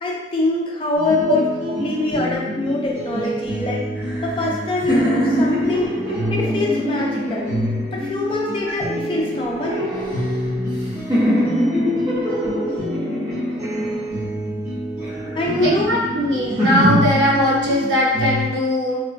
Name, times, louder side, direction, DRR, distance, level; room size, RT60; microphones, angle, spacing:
voice 1, 0.0-1.4 1.8-3.9 4.2-5.9 6.3-7.5 7.9-9.8 15.4-15.9, left 2 dB, 30° left, -3 dB, 0.4 m, -24 dB
sound 1, 0.9-18.5, equal, 45° right, 1.1 m, -27 dB
sound 2, 4.0-8.3 8.9-10.8 11.1-14.5 15.0-17.1, equal, 25° right, 0.7 m, -24 dB
voice 2, 15.6-19.0, equal, 85° right, -5 dB, 0.8 m, -20 dB
2.9 x 2.2 x 2.5 m, 1.1 s
head